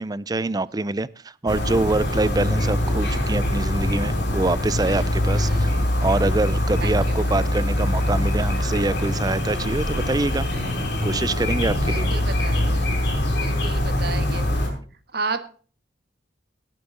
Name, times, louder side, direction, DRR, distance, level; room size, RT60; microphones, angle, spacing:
voice 1, 0.0-10.5 11.0-12.1, right 2 dB, 20° right, 19 dB, 0.4 m, -25 dB
sound 1, 1.5-14.7, left 1 dB, 60° left, 5.0 m, -23 dB
voice 2, 5.3-5.7 6.8-7.2 11.9-12.9 13.4-14.7 15.1-15.6, right 4 dB, 55° right, 11 dB, 1.3 m, -33 dB
18.5 x 8.6 x 3.8 m, 0.42 s
head